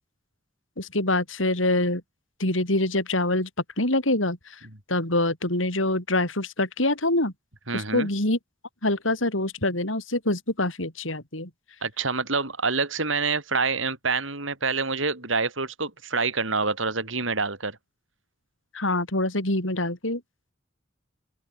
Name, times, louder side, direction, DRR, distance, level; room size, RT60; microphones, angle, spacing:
voice 1, 0.8-2.0 2.4-3.5 3.8-4.6 4.9-7.3 7.7-8.4 8.8-11.5 18.7-20.2, left 1 dB, 85° left, 7.0 m, -25 dB
voice 2, 7.7-8.1 11.8-17.8, right 4 dB, 80° right, 7.1 m, -27 dB
open air
head